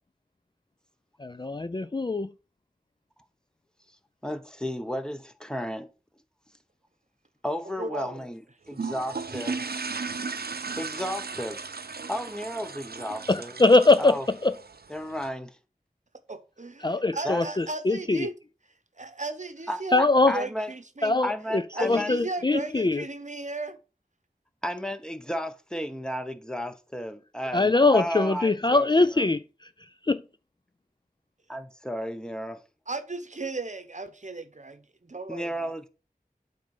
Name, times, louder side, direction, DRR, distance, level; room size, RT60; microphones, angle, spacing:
voice 1, 1.2-2.3 13.3-14.2 14.4-14.5 16.8-18.3 19.9-20.3 21.0-23.0 27.5-29.4 30.1-30.2, left 3 dB, 30° left, 0.4 m, -22 dB
voice 2, 4.2-5.9 7.4-9.6 10.8-11.6 12.1-13.6 14.0-14.3 14.9-15.6 17.2-17.5 19.7-20.7 21.2-22.1 24.6-28.9 29.2-29.3 31.5-32.6 35.3-35.9, equal, 5° left, 1.0 m, -33 dB
voice 3, 7.8-8.1 16.3-18.3 19.0-20.0 20.3-21.2 21.7-23.8 32.9-35.7, right 3 dB, 50° right, 0.9 m, -35 dB
sound 1, 8.7-15.3, right 4 dB, 90° right, 0.6 m, -36 dB
8.5 x 3.9 x 5.4 m
wide cardioid pair, 40°, 16 cm